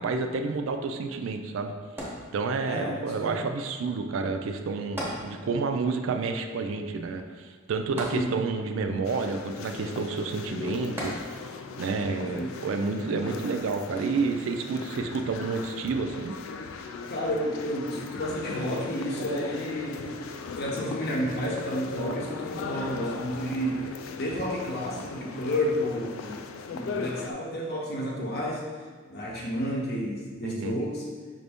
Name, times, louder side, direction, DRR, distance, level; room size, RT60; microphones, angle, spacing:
voice 1, 0.0-1.7 2.3-11.1 11.8-16.3 30.4-30.8, right 4 dB, 70° right, 6 dB, 0.4 m, -30 dB
sound 1, 2.0-2.9 5.0-5.8 6.1-6.2 8.0-8.8 11.0-11.7 12.4-12.5, equal, 10° right, 0.8 m, -36 dB
voice 2, 2.6-3.5 8.1-8.4 12.2-12.6 17.1-20.2 20.6-23.8 24.2-26.4 26.7-28.6 29.0-31.1, equal, 55° left, -2 dB, 0.8 m, -31 dB
sound 2, 9.0-27.3, left 5 dB, 80° left, 0.3 m, -38 dB
5.1 x 2.6 x 3.4 m, 1.5 s
head